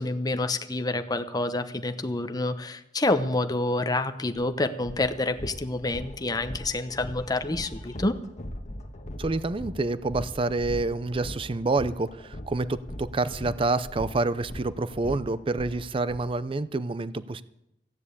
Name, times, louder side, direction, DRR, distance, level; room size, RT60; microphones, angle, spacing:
voice 1, 0.0-8.2, left 2 dB, 20° left, 9 dB, 0.9 m, -28 dB
sound 1, 4.3-4.4 4.8-16.2, left 1 dB, 40° left, 1.3 m, -40 dB
voice 2, 9.2-17.4, right 3 dB, 30° right, 15 dB, 0.5 m, -28 dB
15.0 x 9.9 x 8.4 m, 0.84 s
head